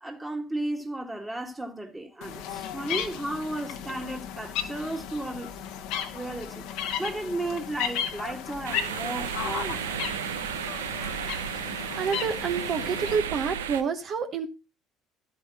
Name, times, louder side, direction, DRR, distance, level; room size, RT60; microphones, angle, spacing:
voice 1, 0.0-5.5 6.1-9.9, right 1 dB, 15° right, 1.8 m, -34 dB
sound 1, 2.2-13.2, left 9 dB, 65° left, 1.1 m, -35 dB
sound 2, 8.6-13.8, right 9 dB, 80° right, 0.5 m, -33 dB
voice 2, 12.0-14.5, right 6 dB, 50° right, 1.0 m, -28 dB
12.5 x 8.0 x 2.9 m
hypercardioid pair, 60°, 0 cm